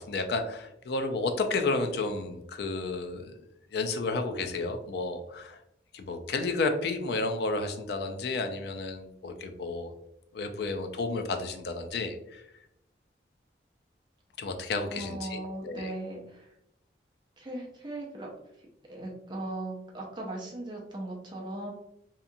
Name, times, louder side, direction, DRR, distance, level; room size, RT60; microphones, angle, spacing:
voice 1, 0.0-3.3 3.7-5.6 5.9-9.9 10.3-12.4 14.4-15.9, left 3 dB, 60° left, 6 dB, 0.3 m, -32 dB
voice 2, 14.8-16.5 17.4-18.3 18.9-21.7, right 1 dB, 25° right, -1 dB, 0.5 m, -38 dB
2.8 x 2.4 x 2.5 m, 0.80 s
head